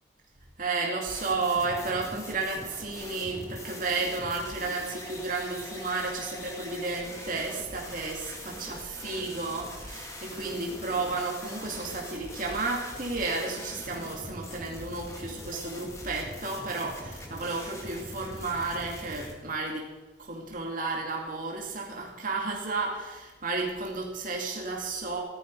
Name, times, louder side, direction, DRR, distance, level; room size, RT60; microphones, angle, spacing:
voice 1, 0.6-19.9 20.2-25.2, right 3 dB, 45° right, -1 dB, 2.4 m, -32 dB
sound 1, 1.0-19.3, left 1 dB, 15° left, 2.1 m, -42 dB
15.0 x 13.5 x 4.8 m, 1.2 s
head